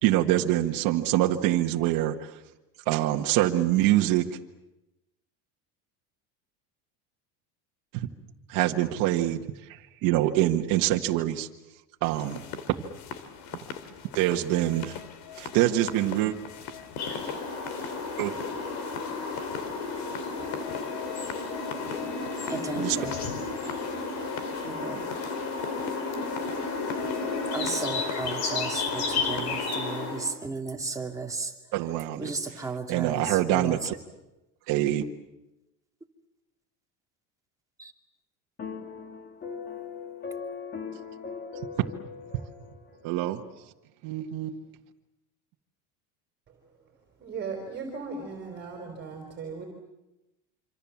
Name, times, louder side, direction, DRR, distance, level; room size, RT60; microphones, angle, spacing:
voice 1, 0.0-2.3 2.9-4.2 7.9-8.1 8.5-9.4 9.7-11.5 12.0-12.4 14.1-15.0 15.4-16.3 18.2-18.3 22.8-23.0 31.7-32.6 32.9-34.0 34.7-35.0 41.8-41.9 43.0-43.4 44.0-44.6, right 14 dB, 60° right, 3 dB, 1.7 m, -25 dB
sound 1, 12.0-29.7, left 7 dB, 65° left, 2.9 m, -41 dB
sound 2, 17.0-30.3, left 4 dB, 45° left, 4.7 m, -32 dB
voice 2, 22.5-23.2 24.6-25.1 27.5-31.5 32.2-33.9 37.8-37.9, right 4 dB, 10° right, 2 dB, 2.4 m, -34 dB
sound 3, 38.6-43.0, left 6 dB, 25° left, 3.1 m, -39 dB
voice 3, 47.2-49.6, right 4 dB, 25° right, 3 dB, 4.5 m, -37 dB
26.5 x 26.0 x 7.4 m, 0.98 s
cardioid pair, 145°, 38 cm